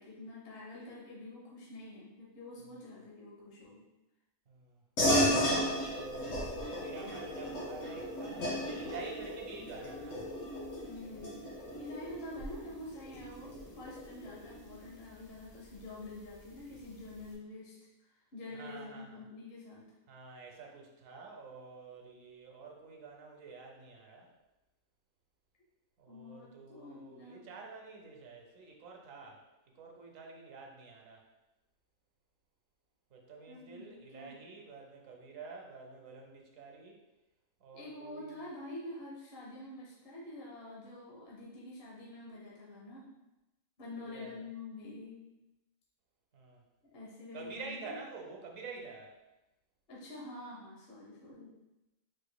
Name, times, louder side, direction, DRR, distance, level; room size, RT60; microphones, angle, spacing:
voice 1, 0.0-3.9 10.8-11.5 11.8-17.8 18.0-19.9 26.1-27.5 33.5-34.4 37.7-43.1 43.8-45.2 46.9-48.0 49.9-51.6, left 2 dB, 50° left, -5 dB, 1.1 m, -47 dB
voice 2, 4.5-4.8 5.8-6.4 6.7-10.2 18.5-19.2 20.1-24.3 26.0-29.4 29.7-31.2 33.1-37.0 37.6-38.4 44.0-44.3 46.3-46.6 47.3-49.1, right 4 dB, 70° right, 1 dB, 1.1 m, -48 dB
sound 1, 5.0-14.8, equal, 90° left, 1.7 m, -34 dB
5.0 x 4.3 x 2.2 m, 0.99 s
omnidirectional pair, 1.4 m